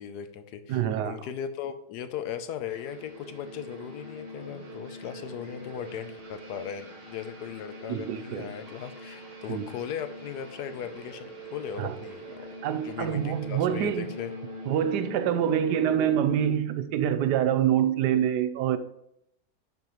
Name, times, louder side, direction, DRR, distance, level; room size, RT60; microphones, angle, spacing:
voice 1, 0.0-12.5 12.8-14.3, left 8 dB, 80° left, 1.2 m, -38 dB
voice 2, 0.7-1.2 7.9-8.5 9.5-9.6 11.8-12.0 12.6-14.1 14.7-18.8, right 10 dB, 85° right, 1.2 m, -26 dB
sound 1, 2.7-16.5, equal, 35° right, 1.9 m, -42 dB
10.5 x 5.4 x 3.1 m
omnidirectional pair, 1.7 m